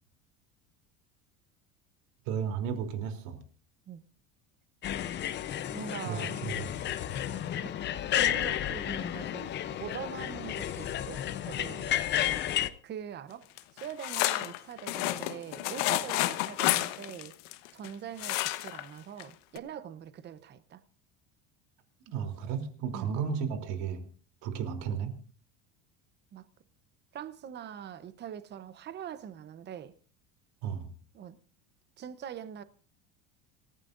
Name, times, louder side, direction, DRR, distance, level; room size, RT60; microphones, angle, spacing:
voice 1, 2.3-3.4 6.0-6.7 22.1-24.1 24.4-25.1 30.6-30.9, right 7 dB, 75° right, 3.4 m, -33 dB
sound 1, 4.8-12.7, left 11 dB, 30° left, 0.7 m, -32 dB
voice 2, 5.7-6.4 7.6-7.8 8.2-12.0 12.8-17.4 17.7-20.8 22.9-23.2 26.3-26.5 27.1-29.9 31.1-31.4 32.0-32.6, right 9 dB, 30° right, 0.9 m, -43 dB
sound 2, 13.6-17.9 18.2-18.9 19.2-19.3 19.6-19.7, left 17 dB, 80° left, 1.3 m, -30 dB
27.0 x 15.0 x 2.6 m
cardioid pair, 160°, 37 cm